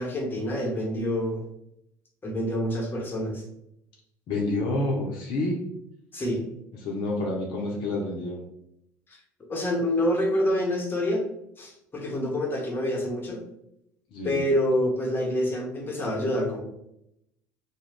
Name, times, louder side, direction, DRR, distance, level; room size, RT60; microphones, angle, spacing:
voice 1, 0.0-1.4 2.2-3.4 6.1-6.4 9.5-11.2 11.6-13.4 14.2-16.6, left 1 dB, 20° left, 0 dB, 0.8 m, -27 dB
voice 2, 4.3-5.6 6.8-8.4 14.1-14.4, left 2 dB, 55° left, -2 dB, 0.6 m, -28 dB
2.3 x 2.1 x 3.3 m, 0.78 s
figure-of-eight pair, 60°, 9 cm